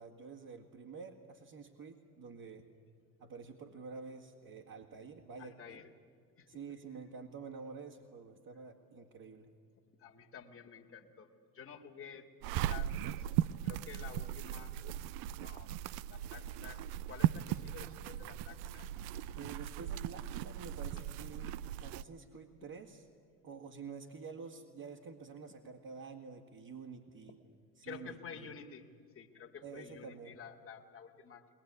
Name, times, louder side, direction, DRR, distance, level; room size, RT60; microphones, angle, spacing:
voice 1, 0.0-2.7 3.2-5.8 6.5-9.5 19.3-23.0 23.4-27.4 27.8-28.1 28.4-28.5 29.6-30.4, right 5 dB, 45° right, -1 dB, 2.2 m, -49 dB
voice 2, 5.4-5.9 6.4-6.8 9.9-12.3 12.7-13.3 13.6-14.8 15.4-15.8 16.1-18.9 27.8-31.5, left 6 dB, 30° left, 1 dB, 2.1 m, -51 dB
sound 1, 12.4-22.0, right 12 dB, 60° right, 0.7 m, -37 dB
21.5 x 20.0 x 9.8 m, 2.1 s
hypercardioid pair, 65°, 47 cm